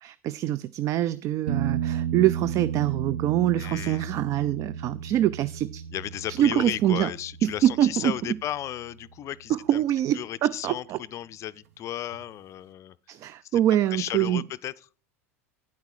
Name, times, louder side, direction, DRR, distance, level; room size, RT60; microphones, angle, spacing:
voice 1, 0.0-5.8 6.3-7.1 7.4-8.1 9.5-11.0 13.1-14.4, right 12 dB, 40° right, 0.4 m, -24 dB
sound 1, 1.5-9.1 12.1-12.2, right 9 dB, 65° right, 1.0 m, -34 dB
voice 2, 3.6-4.1 5.9-9.8 10.1-13.0 13.4-13.6 13.9-14.7, left 12 dB, 40° left, 0.4 m, -34 dB
9.6 x 8.1 x 4.8 m
hypercardioid pair, 80°, 8 cm